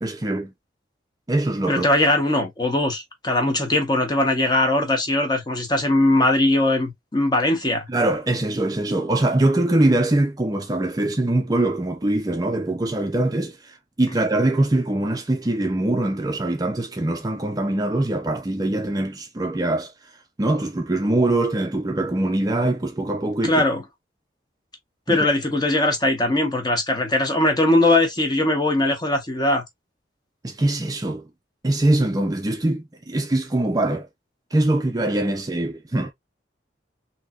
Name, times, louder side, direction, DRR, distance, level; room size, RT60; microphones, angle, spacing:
voice 1, 0.0-0.5 1.3-1.9 7.9-19.9 20.4-23.6 25.1-25.3 30.4-31.3 31.6-34.1 34.5-36.1, right 1 dB, 20° right, 0.5 m, -23 dB
voice 2, 1.7-7.9 23.4-23.8 25.1-29.6, left 2 dB, 25° left, 0.9 m, -20 dB
3.3 x 2.8 x 2.4 m
head